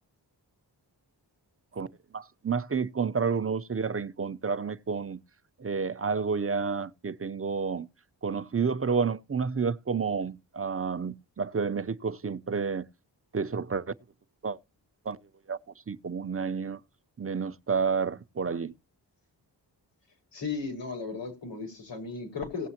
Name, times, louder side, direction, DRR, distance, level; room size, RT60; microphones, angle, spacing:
voice 1, 2.1-5.2 5.6-7.9 8.2-12.9 13.3-13.9 14.4-14.6 15.1-15.2 15.5-15.6 15.9-16.8 17.2-18.7, right 5 dB, 35° right, 0.7 m, -30 dB
voice 2, 20.3-22.7, left 4 dB, 80° left, 4.3 m, -35 dB
18.0 x 7.3 x 2.9 m
cardioid pair, 60°, 42 cm